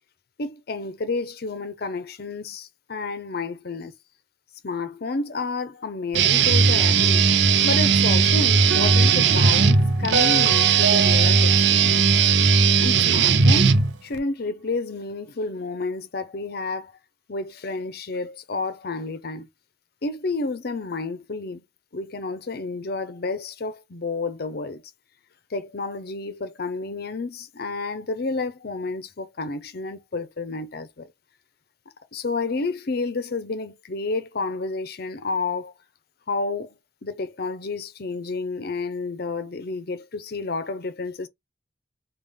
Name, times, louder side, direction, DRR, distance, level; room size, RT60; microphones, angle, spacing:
voice 1, 0.4-3.9 4.6-7.4 7.6-12.2 12.8-13.8 14.0-16.9 17.3-19.5 20.0-21.6 21.9-24.8 25.5-31.1 32.1-35.7 36.3-36.7 37.0-41.3, left 3 dB, 60° left, 0.6 m, -30 dB
Guitar, 6.1-14.2, right 5 dB, 70° right, 0.5 m, -18 dB
sound 1, 8.7-13.0, right 2 dB, 85° right, 0.9 m, -30 dB
3.4 x 2.4 x 3.5 m
head